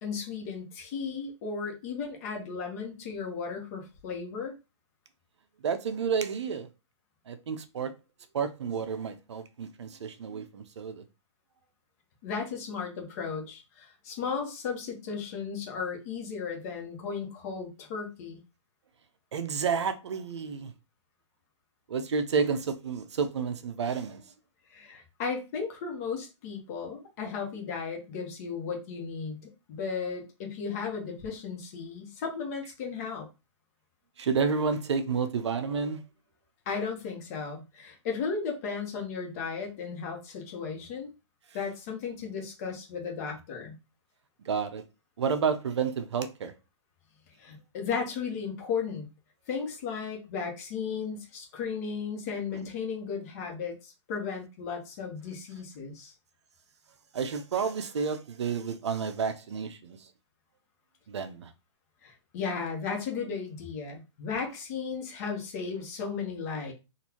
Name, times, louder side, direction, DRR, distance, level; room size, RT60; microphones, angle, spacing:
voice 1, 0.0-4.5 12.2-18.4 24.7-33.3 36.7-41.1 41.5-43.7 47.4-49.1 49.5-56.1 62.0-66.7, left 5 dB, 30° left, 1.1 m, -35 dB
voice 2, 5.6-6.7 7.3-7.9 8.3-11.0 19.3-20.7 21.9-24.2 34.2-36.0 44.4-44.8 45.2-46.5 52.5-52.6 57.1-60.1 61.1-61.5, right 6 dB, 65° right, 0.7 m, -30 dB
4.0 x 2.6 x 2.9 m
hypercardioid pair, 155°, 16 cm